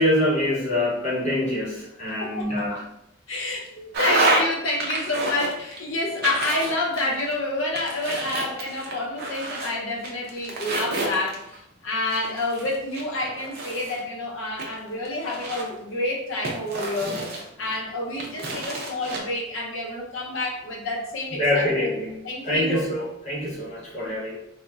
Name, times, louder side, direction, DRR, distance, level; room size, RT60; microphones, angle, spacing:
voice 1, 0.0-2.8 21.4-22.2 22.4-24.4, left 1 dB, 35° left, -6 dB, 0.9 m, -25 dB
voice 2, 2.2-2.7 3.3-17.2 17.6-21.7 22.2-22.9, left 2 dB, 65° left, -1 dB, 0.6 m, -28 dB
sound 1, 3.9-4.5 4.8-5.8 6.2-7.3 7.7-9.7 10.0-11.6 12.1-14.0 14.6-15.8 16.4-17.8 18.2-19.2, right 2 dB, 50° right, 0.5 m, -28 dB
3.8 x 2.1 x 2.3 m, 0.80 s
head